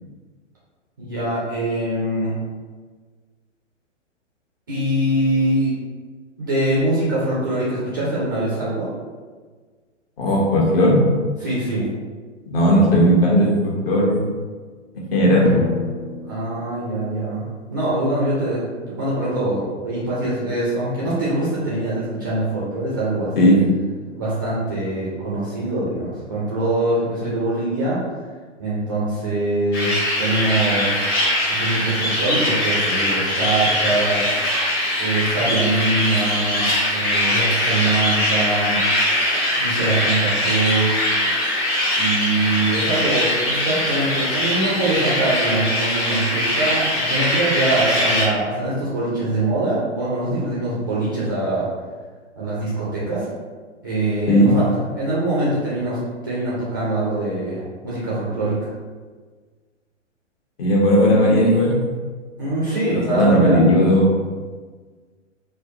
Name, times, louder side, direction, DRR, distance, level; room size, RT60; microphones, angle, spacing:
voice 1, 1.0-2.4 4.7-5.7 6.4-8.9 11.4-11.9 16.3-17.4 17.7-23.3 24.1-28.0 28.6-31.2 31.5-34.3 35.0-38.8 39.6-41.1 41.9-51.7 52.4-53.3 53.8-54.7 54.9-58.6 62.4-63.6, right 2 dB, 20° right, -8 dB, 0.3 m, -23 dB
voice 2, 10.2-11.1 12.5-14.2 15.1-15.5 23.4-23.6 54.3-54.5 60.6-61.9 62.9-64.1, equal, 50° left, -3 dB, 1.0 m, -16 dB
Drum, 15.4-17.4, left 2 dB, 85° left, 0.7 m, -28 dB
sound 1, 29.7-48.2, left 1 dB, 20° left, 0.7 m, -21 dB
4.4 x 2.1 x 2.6 m, 1.5 s
figure-of-eight pair, 110°, 37 cm